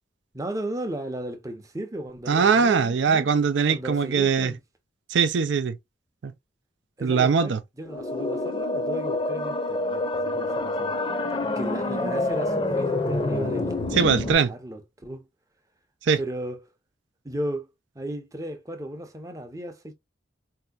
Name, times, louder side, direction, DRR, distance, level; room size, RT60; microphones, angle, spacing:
voice 1, 0.3-3.3 3.7-4.6 7.0-11.0 11.4-15.3 16.2-16.6 17.2-17.7 17.9-19.9, right 1 dB, 15° right, 0.6 m, -35 dB
voice 2, 2.3-4.5 5.1-5.8 6.2-6.3 7.0-7.6 13.9-14.5 16.0-16.2, right 5 dB, 70° right, 0.4 m, -21 dB
sound 1, 7.9-14.3, left 2 dB, 25° left, 0.6 m, -27 dB
4.2 x 2.8 x 2.3 m
head